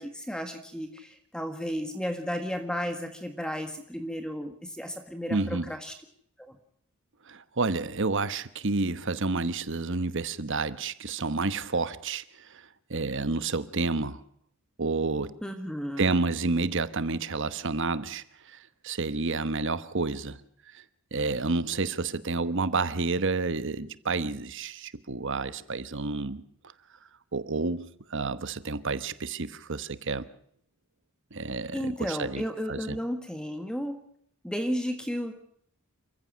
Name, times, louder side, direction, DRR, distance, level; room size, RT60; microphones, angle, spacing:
voice 1, 0.0-5.9 6.4-6.5 15.4-16.2 31.7-34.0 34.4-35.3, equal, 5° left, 1.7 m, -33 dB
voice 2, 5.3-5.7 7.3-14.2 14.8-15.4 16.0-20.4 20.7-20.8 21.1-26.4 27.3-30.3 31.3-32.4 32.7-33.0, right 3 dB, 55° right, 1.1 m, -30 dB
28.0 x 15.5 x 6.3 m
head